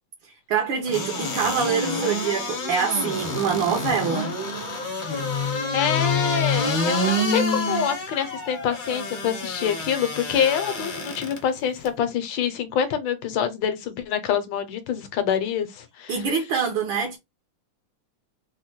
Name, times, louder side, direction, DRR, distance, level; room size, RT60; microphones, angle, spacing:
voice 1, 0.2-4.3 16.1-17.2, right 6 dB, 75° right, 1.5 m, -25 dB
sound 1, 0.9-11.4 11.9-12.0, left 2 dB, 45° left, 0.6 m, -27 dB
voice 2, 5.7-16.2, left 8 dB, 75° left, 1.3 m, -26 dB
4.0 x 2.1 x 2.9 m
omnidirectional pair, 2.2 m